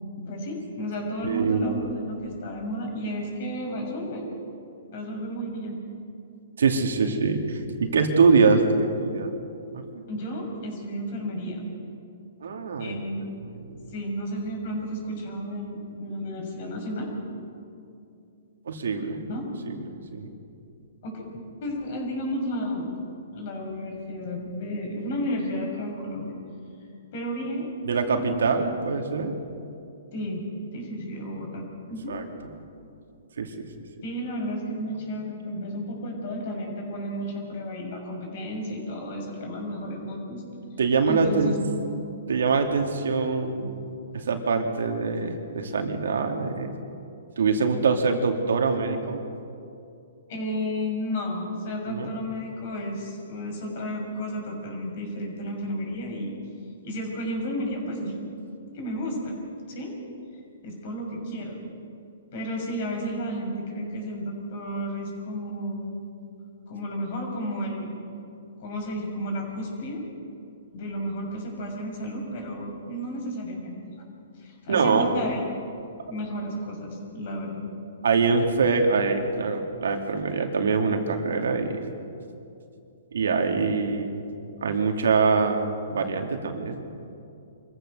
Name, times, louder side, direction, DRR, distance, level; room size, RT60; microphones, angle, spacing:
voice 1, 0.1-4.3 4.9-5.8 10.1-11.7 12.8-13.3 13.9-17.1 19.3-19.4 21.0-21.3 21.6-23.0 23.3-26.4 27.1-27.7 28.0-28.4 30.1-30.4 30.7-32.2 34.0-40.4 41.0-42.0 50.3-56.3 56.8-58.1 58.7-59.4 59.7-59.9 60.6-61.6 62.3-66.1 66.7-68.0 68.6-70.0 70.7-73.7 74.4-75.4 76.1-77.7, equal, 50° left, 1 dB, 6.5 m, -32 dB
voice 2, 1.2-1.8 6.6-9.3 9.7-10.0 12.4-12.9 13.7-13.9 18.7-19.3 19.7-20.3 27.9-29.3 32.1-32.2 33.4-33.7 40.8-41.6 42.3-46.7 47.4-49.2 51.9-52.1 74.7-75.1 78.0-81.9 83.1-84.2 84.6-86.8, right 4 dB, 80° right, 4 dB, 2.6 m, -24 dB
25.5 x 15.0 x 6.8 m, 2.6 s
hypercardioid pair, 145°, 0 cm